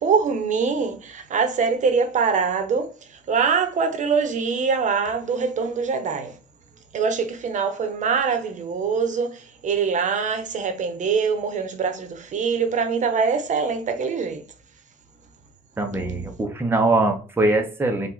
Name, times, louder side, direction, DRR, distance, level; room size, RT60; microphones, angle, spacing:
voice 1, 0.0-6.3 6.9-14.4, right 5 dB, 45° right, 1.1 m, -23 dB
voice 2, 15.8-18.1, right 2 dB, 15° right, 0.9 m, -22 dB
4.9 x 2.6 x 4.0 m
cardioid pair, 110°, 17 cm